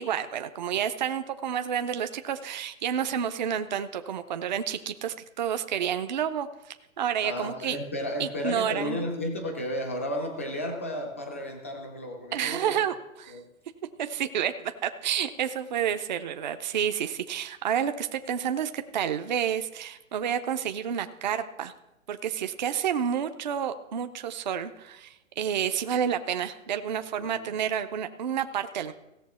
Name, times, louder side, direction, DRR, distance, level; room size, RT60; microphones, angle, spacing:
voice 1, 0.0-6.5 7.0-7.8 8.2-9.0 12.3-13.4 14.0-21.7 22.1-28.9, right 9 dB, 35° right, 9 dB, 0.6 m, -30 dB
voice 2, 7.2-12.8 13.3-13.5 27.1-27.6, left 1 dB, 10° left, 3 dB, 0.4 m, -33 dB
16.5 x 6.7 x 4.2 m, 0.91 s
hypercardioid pair, 155°, 41 cm